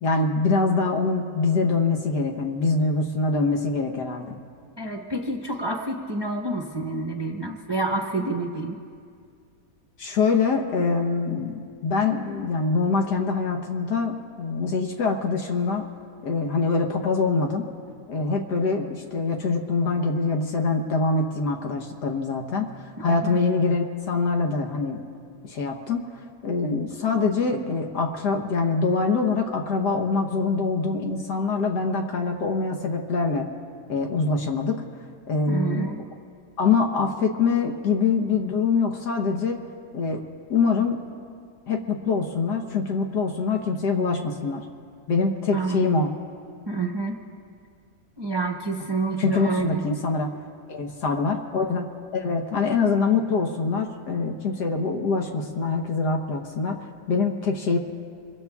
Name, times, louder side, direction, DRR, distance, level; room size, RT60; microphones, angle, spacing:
voice 1, 0.0-4.4 10.0-15.8 16.2-17.6 18.1-25.0 25.4-33.5 33.9-34.8 35.3-35.9 36.6-39.6 39.9-40.2 40.5-41.0 41.7-44.6 45.1-46.1 49.2-50.3 50.7-56.8 57.1-57.8, left 4 dB, 75° left, 2 dB, 1.6 m, -24 dB
voice 2, 4.8-8.8 23.1-23.4 35.5-36.0 45.5-46.1 46.7-47.2 48.2-49.8, right 3 dB, 20° right, 0 dB, 0.8 m, -28 dB
27.0 x 23.0 x 2.4 m, 2.3 s
omnidirectional pair, 1.8 m